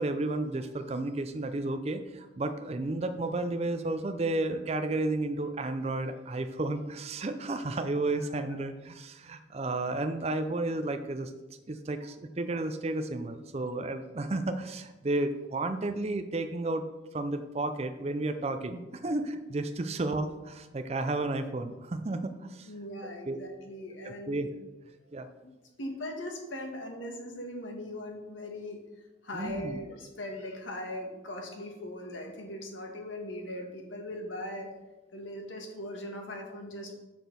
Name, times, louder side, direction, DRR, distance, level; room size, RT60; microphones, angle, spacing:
voice 1, 0.0-11.3 11.7-16.9 17.1-22.7 23.3-23.4 24.0-24.5 25.1-25.3 29.3-29.8, right 2 dB, 35° right, 8 dB, 0.4 m, -32 dB
voice 2, 8.1-8.5 22.6-24.5 25.4-25.5 25.8-28.8 29.2-34.7 35.1-37.0, left 1 dB, 80° left, 2 dB, 1.5 m, -40 dB
6.5 x 6.0 x 5.3 m, 1.1 s
head